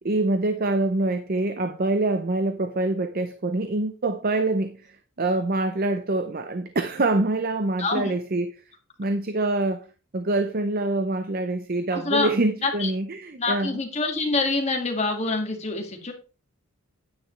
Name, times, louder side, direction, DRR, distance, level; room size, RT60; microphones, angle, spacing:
voice 1, 0.0-8.5 9.0-9.9 10.1-13.8, right 2 dB, 40° right, 0.6 m, -25 dB
voice 2, 7.8-8.1 11.9-12.3 12.6-12.9 13.4-16.1, left 3 dB, 30° left, 2.0 m, -26 dB
9.5 x 9.4 x 3.2 m
head